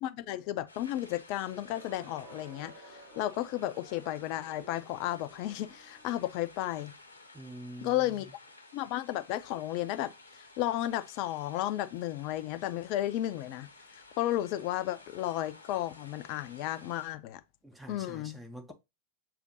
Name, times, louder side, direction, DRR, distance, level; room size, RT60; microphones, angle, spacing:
voice 1, 0.0-6.9 7.8-8.3 8.7-10.1 10.6-17.4 17.9-18.4, left 14 dB, 45° left, 0.4 m, -33 dB
sound 1, 0.7-17.1, left 2 dB, 80° left, 0.8 m, -55 dB
Crowd, 1.4-6.4, right 1 dB, 55° right, 1.1 m, -54 dB
voice 2, 7.3-8.1 17.6-18.7, right 1 dB, 5° right, 0.6 m, -46 dB
6.4 x 2.5 x 2.6 m
figure-of-eight pair, 90°, 0 cm